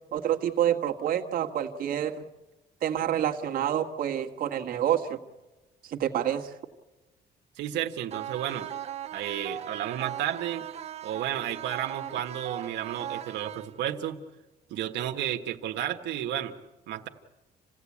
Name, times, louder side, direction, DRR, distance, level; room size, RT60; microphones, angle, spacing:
voice 1, 0.1-2.2 2.8-5.2 5.8-6.5, right 10 dB, 55° right, 3 dB, 1.7 m, -28 dB
voice 2, 7.6-8.7 9.1-10.7 11.0-14.2 14.7-16.5 16.9-17.1, right 11 dB, 85° right, 4 dB, 1.5 m, -32 dB
sound 1, 8.1-14.1, right 10 dB, 40° right, 0.8 m, -39 dB
27.5 x 16.5 x 8.6 m, 1.1 s
cardioid pair, 165°, 18 cm